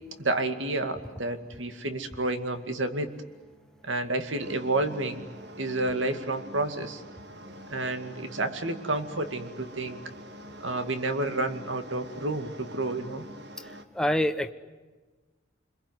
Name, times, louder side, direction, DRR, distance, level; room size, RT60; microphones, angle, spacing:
voice 1, 0.2-3.1 3.8-5.2 5.6-7.0 7.7-10.0 10.6-13.2, right 2 dB, 75° right, 8 dB, 2.3 m, -30 dB
sound 1, 4.4-13.9, equal, 60° right, 1.9 m, -45 dB
voice 2, 13.9-14.5, equal, 5° left, 8 dB, 1.0 m, -25 dB
28.0 x 22.0 x 9.5 m, 1.3 s
head